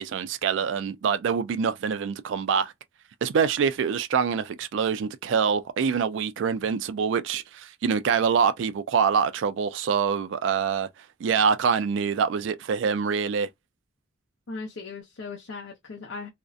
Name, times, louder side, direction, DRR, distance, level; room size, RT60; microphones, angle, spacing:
voice 1, 0.0-2.7 3.2-10.9 11.2-13.5, right 6 dB, 70° right, 0.3 m, -25 dB
voice 2, 14.5-16.3, left 4 dB, 65° left, 0.6 m, -38 dB
2.5 x 2.1 x 2.3 m
head